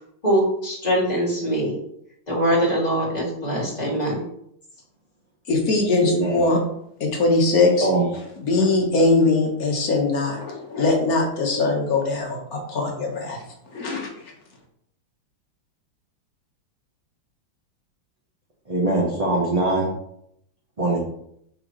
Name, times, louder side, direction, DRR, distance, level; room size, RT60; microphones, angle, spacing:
voice 1, 0.2-1.8 2.3-4.2, equal, 20° left, -4 dB, 2.4 m, -22 dB
voice 2, 5.5-6.6 7.0-7.9 8.4-13.4 13.7-14.1, left 3 dB, 50° left, 1 dB, 1.8 m, -21 dB
voice 3, 6.0-6.4 7.8-8.0 18.7-19.9 20.8-21.0, right 2 dB, 25° right, -5 dB, 1.0 m, -22 dB
6.4 x 6.0 x 3.1 m, 0.73 s
omnidirectional pair, 2.1 m